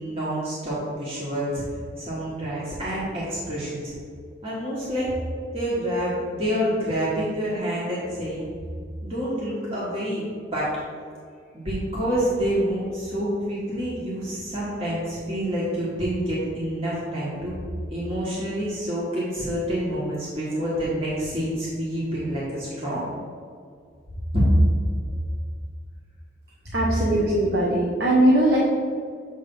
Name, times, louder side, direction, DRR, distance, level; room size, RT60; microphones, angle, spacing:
voice 1, 0.0-1.6 2.0-3.9 4.4-5.1 5.5-8.5 9.0-10.3 10.5-10.8 11.5-17.5 17.9-23.0 24.3-24.5, equal, 30° right, -8 dB, 1.3 m, -27 dB
voice 2, 26.7-28.6, right 1 dB, 55° right, -4 dB, 0.8 m, -20 dB
6.9 x 3.3 x 5.3 m, 2.1 s
head